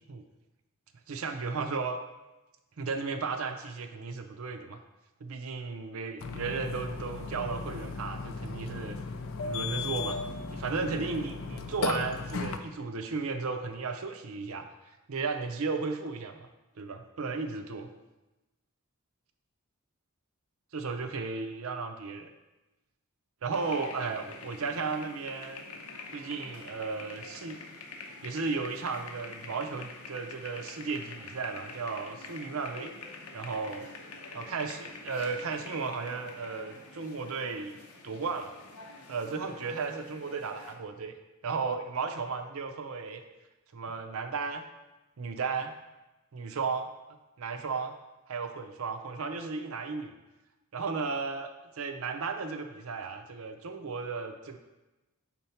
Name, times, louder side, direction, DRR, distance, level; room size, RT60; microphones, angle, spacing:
voice 1, 1.1-2.0 2.8-4.8 5.2-9.0 9.4-14.6 15.1-16.5 16.8-17.9 20.7-22.3 23.4-25.6 26.1-27.6 28.2-32.9 33.3-33.8 34.3-37.7 38.0-38.5 39.1-41.1 41.4-43.2 43.7-44.6 45.2-45.7 46.3-46.9 47.4-47.9 48.3-50.1 50.7-51.5 51.8-54.6, right 4 dB, 70° right, 6 dB, 0.5 m, -34 dB
Burping eructation, 6.2-12.6, left 4 dB, 65° left, 0.4 m, -36 dB
sound 1, 23.5-40.7, left 3 dB, 90° left, 0.8 m, -46 dB
4.4 x 3.9 x 5.6 m, 1.0 s
head